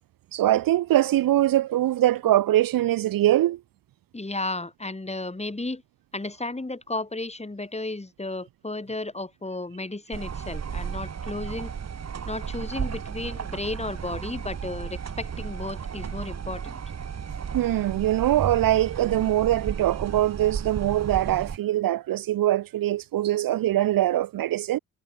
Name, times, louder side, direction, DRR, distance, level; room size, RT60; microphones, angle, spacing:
voice 1, 0.3-3.6 17.5-24.8, right 14 dB, 55° right, 1.0 m, -23 dB
voice 2, 4.1-5.8 6.1-11.7 12.3-16.8, left 2 dB, 15° left, 4.4 m, -33 dB
sound 1, 10.1-21.6, right 7 dB, 40° right, 2.2 m, -34 dB
hypercardioid pair, 45°, 40 cm